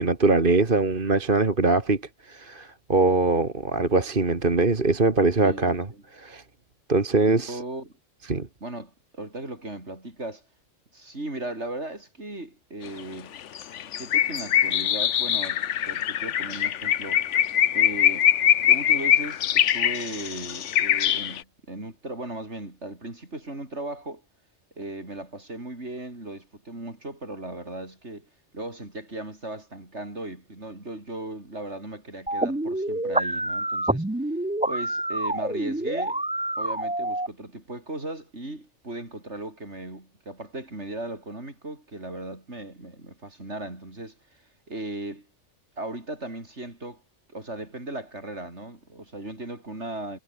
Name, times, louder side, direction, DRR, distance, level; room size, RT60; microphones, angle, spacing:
voice 1, 0.0-6.4 6.9-7.6 8.3-8.5, right 3 dB, 45° right, 2.1 m, -22 dB
voice 2, 5.4-6.0 7.2-7.9 8.6-10.4 10.9-13.4 13.9-17.3 17.7-18.3 18.6-24.2 24.8-34.3 34.6-36.2 36.6-45.3 45.8-47.0 47.3-50.2, right 2 dB, 65° right, 6.4 m, -37 dB
sound 1, 13.0-13.1 13.4-21.4, left 10 dB, 75° left, 1.1 m, -23 dB
sound 2, 32.3-37.3, right 1 dB, 10° right, 0.6 m, -27 dB
omnidirectional pair, 1.2 m